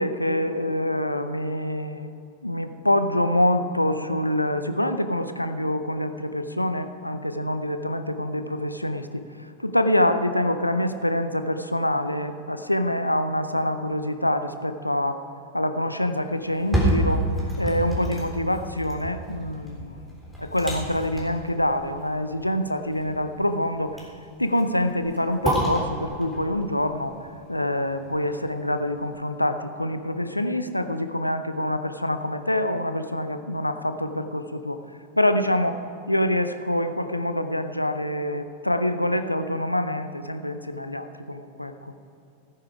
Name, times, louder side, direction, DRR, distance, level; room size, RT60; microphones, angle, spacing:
voice 1, 0.0-2.1 2.4-15.2 15.5-17.3 17.6-20.0 20.4-24.0 24.4-27.1 27.5-34.8 35.2-41.9, left 1 dB, 85° left, 10 dB, 0.6 m, -26 dB
sound 1, 16.4-28.5 28.9-29.0, right 1 dB, 5° right, 3.6 m, -30 dB
16.5 x 9.7 x 4.9 m, 2.9 s
figure-of-eight pair, 90°, 0 cm